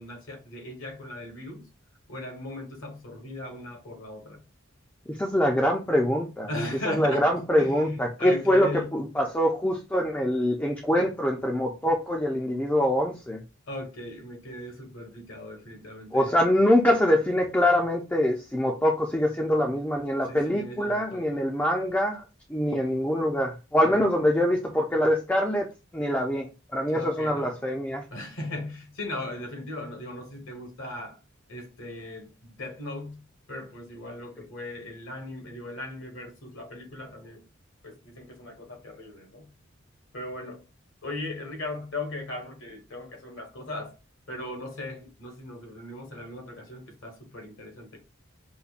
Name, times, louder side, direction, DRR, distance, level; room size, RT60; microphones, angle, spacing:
voice 1, 0.0-1.7 2.1-4.4 6.5-8.9 13.7-16.4 20.3-21.4 23.9-24.1 26.9-27.6 28.1-31.2 31.5-37.4 37.8-39.5 40.1-40.6 41.0-44.0 44.3-48.0, left 1 dB, 75° left, 1.3 m, -38 dB
voice 2, 5.1-6.5 6.9-13.4 16.1-22.2 22.5-25.7 25.9-28.0, left 1 dB, 10° left, 0.4 m, -24 dB
5.3 x 2.1 x 2.4 m
head